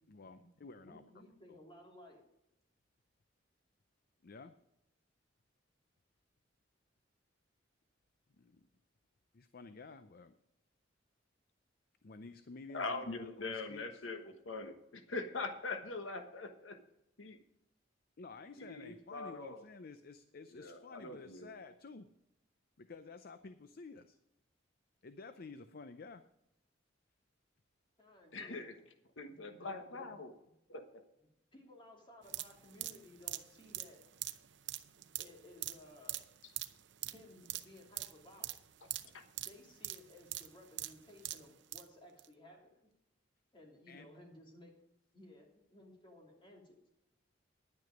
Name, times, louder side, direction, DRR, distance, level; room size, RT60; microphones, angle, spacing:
voice 1, 0.1-1.0 1.5-1.6 4.2-4.5 8.4-8.7 9.3-10.3 12.0-14.0 18.2-22.1 22.8-24.2 25.0-26.2 43.9-44.1, left 3 dB, 50° left, 10 dB, 0.5 m, -52 dB
voice 2, 0.8-2.2 28.0-28.6 29.3-30.2 31.2-34.0 35.2-36.2 37.1-38.5 39.3-42.9 43.5-44.7 45.1-46.9, left 1 dB, 25° left, 0 dB, 2.9 m, -58 dB
voice 3, 12.7-16.8 17.2-17.4 18.6-19.6 20.5-21.5 28.3-28.7 29.2-30.3 30.7-30.9, left 3 dB, 90° left, 7 dB, 1.2 m, -42 dB
sound 1, 32.2-41.9 42.2-42.3, right 14 dB, 65° right, 0.7 m, -43 dB
10.5 x 9.5 x 5.1 m, 0.84 s
head